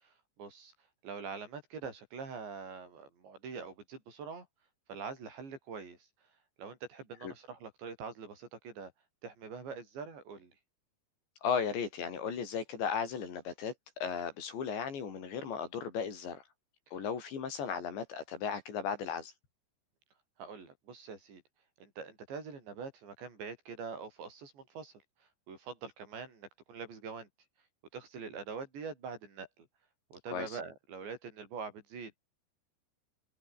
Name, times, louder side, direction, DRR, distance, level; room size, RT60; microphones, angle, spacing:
voice 1, 0.0-0.7 1.0-4.5 4.9-6.0 6.6-8.9 9.2-10.5 20.4-21.4 21.8-24.9 25.5-27.3 27.9-29.7 30.1-32.2, right 5 dB, 90° right, 9.0 m, -44 dB
voice 2, 11.4-16.4 16.9-19.3 30.3-30.6, left 6 dB, 90° left, 7.0 m, -36 dB
omnidirectional pair, 5.0 m